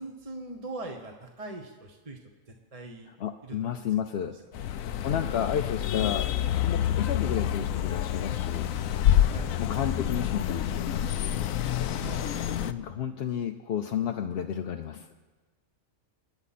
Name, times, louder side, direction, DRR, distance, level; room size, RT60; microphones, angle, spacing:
voice 1, 0.0-2.2 2.7-3.1 3.4-3.9 4.1-5.2 9.3-9.6 12.0-12.7, right 2 dB, 30° right, 2 dB, 1.1 m, -42 dB
voice 2, 3.1-4.4 4.7-6.3 6.6-8.7 9.6-11.4 12.6-15.1, left 9 dB, 60° left, 5 dB, 0.7 m, -32 dB
sound 1, 4.5-12.7, left 11 dB, 80° left, 1.0 m, -28 dB
28.0 x 9.8 x 4.2 m, 1.3 s
omnidirectional pair, 1.4 m